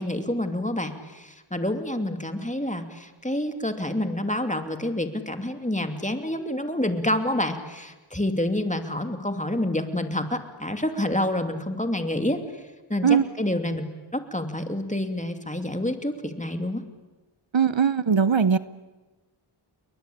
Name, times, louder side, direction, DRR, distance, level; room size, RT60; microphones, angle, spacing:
voice 1, 0.0-12.6 12.9-13.8 14.1-16.8, left 1 dB, 15° left, 6 dB, 2.7 m, -28 dB
voice 2, 17.5-18.6, right 7 dB, 65° right, 15 dB, 0.8 m, -20 dB
30.0 x 22.0 x 8.7 m, 1.2 s
wide cardioid pair, 40°, 50 cm